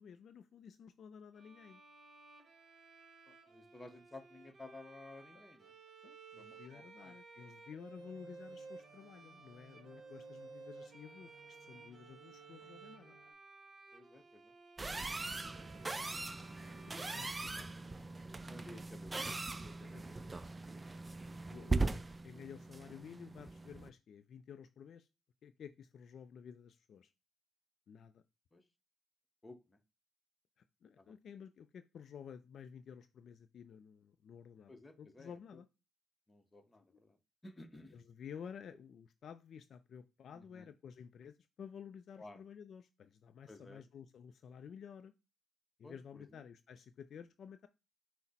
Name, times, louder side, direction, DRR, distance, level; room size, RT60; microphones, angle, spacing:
voice 1, 0.0-1.8 5.3-5.5 6.0-13.2 17.1-17.7 19.8-20.3 21.3-21.8 22.2-25.1 25.4-27.1 27.9-28.2 30.6-34.7 35.0-35.7 36.9-37.0 37.9-45.1 45.8-47.7, left 7 dB, 60° left, 0.3 m, -53 dB
Bowed string instrument, 1.3-18.3, right 4 dB, 45° right, 1.0 m, -56 dB
voice 2, 3.3-5.7 6.4-7.1 12.6-12.7 13.9-14.5 15.3-15.6 17.6-17.7 18.5-20.3 28.5-28.6 29.4-29.8 31.0-31.1 34.7-35.3 36.3-37.2 37.4-38.0 40.3-40.7 42.2-42.4 43.5-43.8 45.8-46.4, left 2 dB, 20° left, 0.8 m, -55 dB
sound 1, 7.9-13.3, right 2 dB, ahead, 2.0 m, -65 dB
sound 2, 14.8-23.9, right 3 dB, 20° right, 0.3 m, -40 dB
5.8 x 2.0 x 4.1 m
cardioid pair, 90°, 0 cm